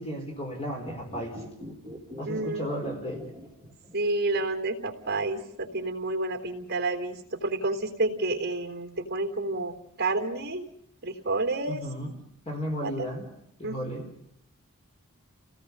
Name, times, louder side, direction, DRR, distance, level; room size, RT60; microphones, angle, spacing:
voice 1, 0.0-1.4 2.2-3.3 11.7-12.1 12.5-13.2 13.6-14.1, equal, 25° left, 1 dB, 4.3 m, -34 dB
sound 1, 0.8-4.2 4.4-4.5, equal, 5° left, 6.7 m, -43 dB
voice 2, 2.2-2.7 3.9-10.6 11.0-11.8 12.8-13.1 13.6-13.8, right 2 dB, 45° right, 5 dB, 3.4 m, -30 dB
30.0 x 18.5 x 5.4 m, 0.75 s
head